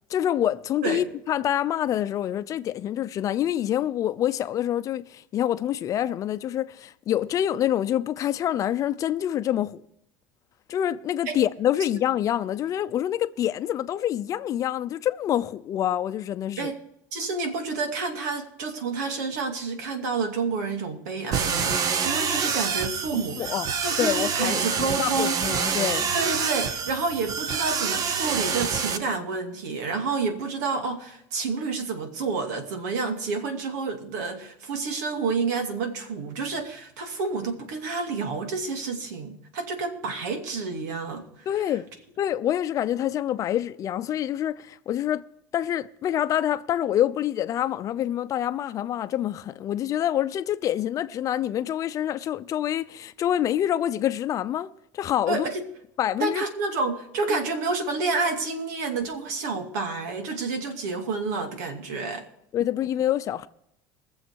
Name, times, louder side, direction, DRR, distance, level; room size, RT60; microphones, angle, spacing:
voice 1, 0.1-9.8 10.7-16.7 23.1-23.7 24.0-26.1 41.5-41.9 42.2-45.3 45.5-55.5 56.0-56.4 57.3-57.4 62.5-63.5, left 11 dB, 40° left, 0.7 m, -26 dB
voice 2, 17.1-23.5 23.8-25.4 26.1-41.5 55.3-55.6 56.2-62.2, right 4 dB, 90° right, 2.5 m, -29 dB
sound 1, 21.3-29.0, right 6 dB, 40° right, 1.1 m, -27 dB
22.0 x 7.3 x 4.7 m
supercardioid pair, 130°, 9 cm